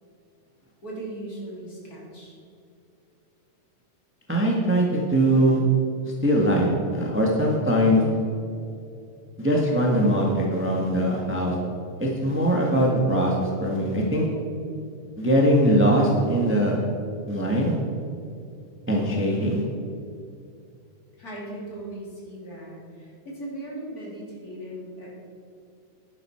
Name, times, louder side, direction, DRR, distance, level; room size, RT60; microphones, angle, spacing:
voice 1, 0.8-2.4 21.2-25.2, right 1 dB, 30° left, -4 dB, 3.2 m, -38 dB
voice 2, 4.3-5.6 6.2-8.0 9.4-11.5 12.0-14.2 15.2-16.8 17.3-17.8 18.9-19.6, equal, 10° right, -2 dB, 0.6 m, -21 dB
11.0 x 11.0 x 4.5 m, 2.6 s
omnidirectional pair, 3.3 m